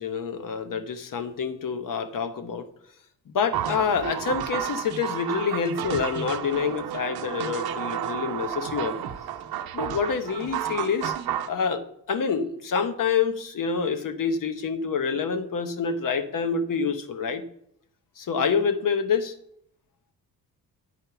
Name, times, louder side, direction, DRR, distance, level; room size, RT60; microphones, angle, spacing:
voice 1, 0.0-2.7 3.3-9.1 9.7-11.1 11.5-11.8 12.1-17.4 18.2-19.3, left 6 dB, 55° left, 10 dB, 1.0 m, -27 dB
sound 1, 3.5-11.5, right 10 dB, 65° right, 0.8 m, -31 dB
9.5 x 4.4 x 5.8 m, 0.72 s
cardioid pair, 90°, 39 cm